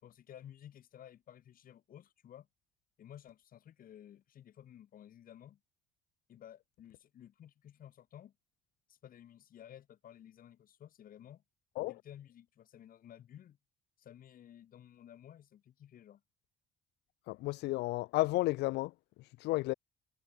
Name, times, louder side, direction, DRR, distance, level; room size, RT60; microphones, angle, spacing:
voice 1, 0.0-2.5 3.0-5.6 6.3-8.3 8.9-11.4 11.8-13.6 14.0-16.2, left 10 dB, 55° left, 7.1 m, -54 dB
voice 2, 17.3-18.9 19.4-19.7, left 20 dB, 85° left, 0.9 m, -32 dB
cardioid pair, 110°, 17 cm